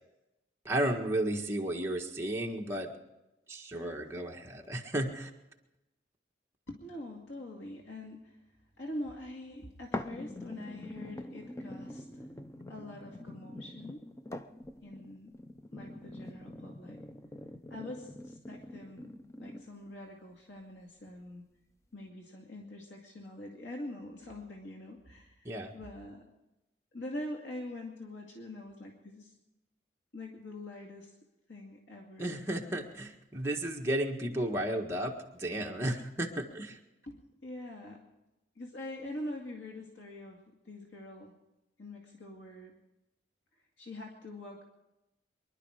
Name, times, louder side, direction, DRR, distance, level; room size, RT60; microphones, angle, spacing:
voice 1, 0.7-2.9 3.5-5.3 25.4-25.7 32.2-36.8, right 1 dB, 15° right, 0 dB, 1.6 m, -33 dB
voice 2, 6.7-8.4 8.8-12.3 12.7-14.0 14.8-15.3 15.7-17.0 17.7-21.4 21.9-26.3 26.9-29.3 30.1-31.2 31.5-32.4 33.4-33.5 37.0-38.0 38.6-41.3 41.8-42.7 43.8-44.6, left 1 dB, 85° left, 0 dB, 2.3 m, -44 dB
sound 1, 9.9-19.9 20.5-20.6, left 1 dB, 15° left, 0.6 m, -44 dB
24.0 x 11.5 x 5.0 m, 0.95 s
head